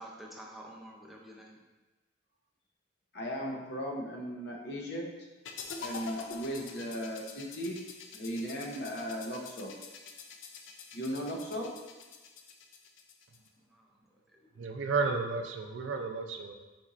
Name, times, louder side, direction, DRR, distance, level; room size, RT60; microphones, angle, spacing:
voice 1, 0.0-1.6 13.7-13.9 14.3-14.6, right 1 dB, ahead, -2 dB, 0.5 m, -49 dB
voice 2, 3.1-5.1 5.8-7.8 8.1-9.7 10.9-11.7, equal, 60° left, -1 dB, 0.8 m, -37 dB
sound 1, 5.4-13.5, left 5 dB, 85° left, 0.4 m, -46 dB
voice 3, 14.6-16.5, right 4 dB, 80° right, 5 dB, 0.4 m, -32 dB
4.4 x 4.1 x 2.5 m, 1.2 s
head